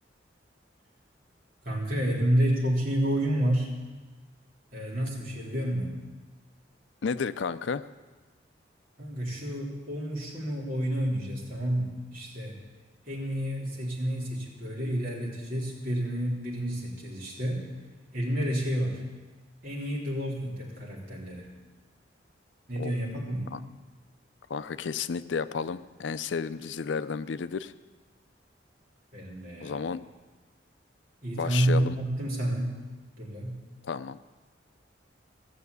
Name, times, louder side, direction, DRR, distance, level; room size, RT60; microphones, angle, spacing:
voice 1, 1.6-3.8 4.7-6.0 9.0-12.6 13.1-17.6 18.1-19.0 19.6-21.5 22.7-23.6 29.1-29.8 31.2-32.8 33.2-33.6, right 1 dB, 45° right, -4 dB, 3.5 m, -29 dB
voice 2, 7.0-7.9 22.8-23.0 23.5-23.6 24.5-27.7 29.6-30.0 31.3-32.0 33.8-34.2, left 5 dB, 75° left, 14 dB, 0.5 m, -32 dB
16.0 x 6.7 x 8.2 m, 1.3 s
head